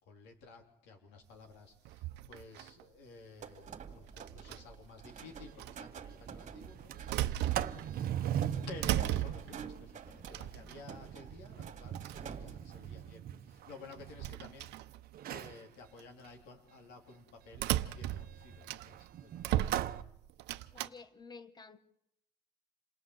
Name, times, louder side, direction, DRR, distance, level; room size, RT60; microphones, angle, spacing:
voice 1, 0.0-8.2 8.7-14.9 15.3-19.9, left 4 dB, 85° left, 3.6 m, -53 dB
sound 1, 1.8-2.8 4.2-4.9 5.6-5.8 6.6-8.1 8.4-9.7 10.3-11.0 11.7-11.8 11.9-12.3 13.9-15.5 16.0-16.3 17.5-19.1 19.4-20.9, right 14 dB, 85° right, 0.8 m, -36 dB
sound 2, 3.4-13.1, right 7 dB, 45° right, 2.4 m, -48 dB
Sliding door, 5.2-5.3 5.6-5.7 6.0-6.3 6.7-14.7 15.1-15.6 17.6-20.0, right 10 dB, 60° right, 1.0 m, -41 dB
voice 2, 20.7-21.8, left 4 dB, 25° left, 1.6 m, -52 dB
28.0 x 18.5 x 7.9 m
cardioid pair, 110°, 17 cm